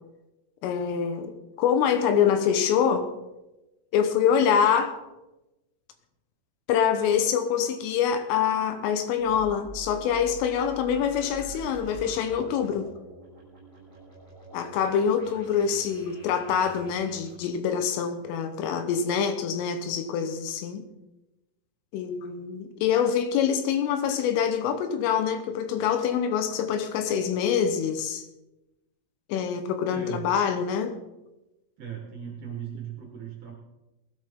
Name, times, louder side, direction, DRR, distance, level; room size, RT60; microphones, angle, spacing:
voice 1, 0.6-3.1 3.9-5.0 6.7-12.9 14.5-20.8 21.9-28.3 29.3-31.0, left 7 dB, 80° left, 8 dB, 3.6 m, -25 dB
sound 1, 9.2-17.3, right 4 dB, 5° left, 5.1 m, -46 dB
voice 2, 29.9-30.3 31.8-33.5, right 8 dB, 60° right, 0 dB, 2.2 m, -38 dB
19.5 x 12.0 x 3.7 m, 1.0 s
omnidirectional pair, 5.9 m